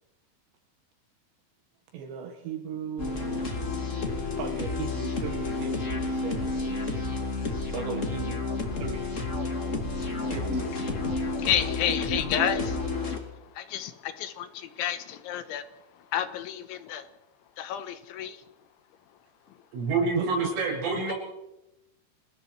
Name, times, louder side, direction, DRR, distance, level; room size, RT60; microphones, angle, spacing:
voice 1, 1.9-3.5 4.2-6.9 7.7-9.2 10.3-11.0 20.2-20.5, right 7 dB, 70° right, 5 dB, 3.3 m, -38 dB
sound 1, 3.0-13.2, left 3 dB, 35° left, 1.2 m, -30 dB
voice 2, 10.0-17.1 17.6-18.5 19.5-19.6, left 10 dB, 75° left, 10 dB, 3.4 m, -32 dB
voice 3, 19.7-21.1, right 4 dB, 85° right, 0 dB, 9.0 m, -27 dB
28.5 x 21.0 x 4.7 m, 0.94 s
omnidirectional pair, 5.7 m